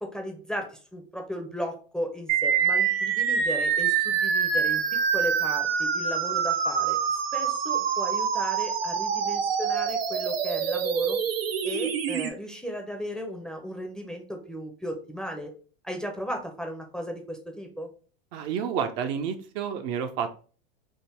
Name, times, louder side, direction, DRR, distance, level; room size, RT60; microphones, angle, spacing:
voice 1, 0.0-11.2 11.6-15.5 15.8-17.9, equal, ahead, 2 dB, 0.6 m, -36 dB
sound 1, 2.3-12.3, right 7 dB, 90° right, 0.6 m, -26 dB
voice 2, 18.3-20.4, right 7 dB, 55° right, 6 dB, 0.6 m, -30 dB
3.6 x 2.0 x 4.2 m, 0.39 s
hypercardioid pair, 105°, 29 cm